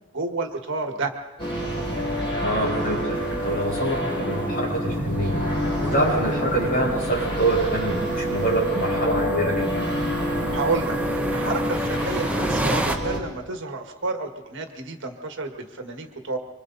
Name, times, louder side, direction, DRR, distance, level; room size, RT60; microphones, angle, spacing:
voice 1, 0.1-1.1 10.5-16.4, right 3 dB, 55° right, 4 dB, 1.7 m, -30 dB
sound 1, 1.4-13.2, equal, 25° left, 6.1 m, -27 dB
voice 2, 2.4-3.2 3.4-9.8, right 1 dB, 45° left, -4 dB, 7.5 m, -25 dB
sound 2, 3.1-13.0, right 1 dB, 5° right, 1.0 m, -32 dB
25.5 x 25.0 x 4.1 m, 1.1 s
head